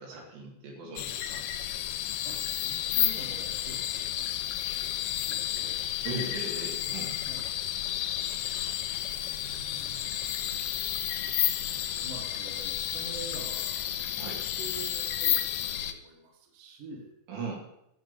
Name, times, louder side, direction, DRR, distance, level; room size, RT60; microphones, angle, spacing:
voice 1, 0.0-1.4 6.0-7.2 14.2-14.4 17.3-17.6, right 3 dB, 80° right, -1 dB, 4.6 m, -38 dB
sound 1, 1.0-15.9, left 12 dB, 80° left, 2.8 m, -31 dB
voice 2, 2.2-5.0 5.3-5.9 6.8-7.4 8.2-8.4 8.8-10.4 11.5-13.9 14.2-17.1, right 3 dB, 60° right, 2 dB, 2.9 m, -47 dB
11.5 x 7.2 x 6.7 m, 0.81 s
omnidirectional pair, 4.9 m